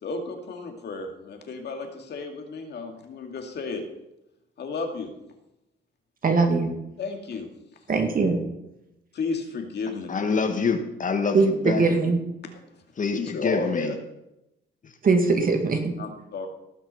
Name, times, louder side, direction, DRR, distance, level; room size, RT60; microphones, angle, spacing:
voice 1, 0.0-3.8 4.6-5.1 7.0-7.8 9.1-10.1 12.7-12.8 13.1-14.0 16.0-16.5, left 4 dB, 60° left, 4 dB, 2.1 m, -33 dB
voice 2, 6.2-6.7 7.9-8.4 11.3-12.2 15.0-16.0, right 4 dB, 45° right, 4 dB, 2.0 m, -21 dB
voice 3, 10.1-11.9 13.0-13.9 14.8-14.9, left 4 dB, 40° left, 7 dB, 1.3 m, -26 dB
17.0 x 6.2 x 5.5 m, 0.88 s
cardioid pair, 90°, 20 cm